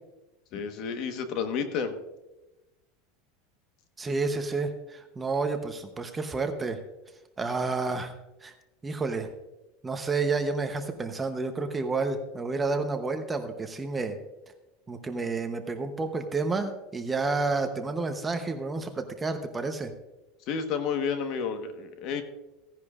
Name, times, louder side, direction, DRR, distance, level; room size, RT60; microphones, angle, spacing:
voice 1, 0.5-2.0 20.5-22.2, left 6 dB, 45° left, 7 dB, 1.2 m, -31 dB
voice 2, 4.0-6.8 7.4-8.1 8.4-8.5 8.8-9.3 9.8-14.2 14.9-19.9, right 3 dB, 15° right, 6 dB, 0.8 m, -30 dB
16.5 x 10.5 x 2.4 m, 1.0 s
supercardioid pair, 155°, 0 cm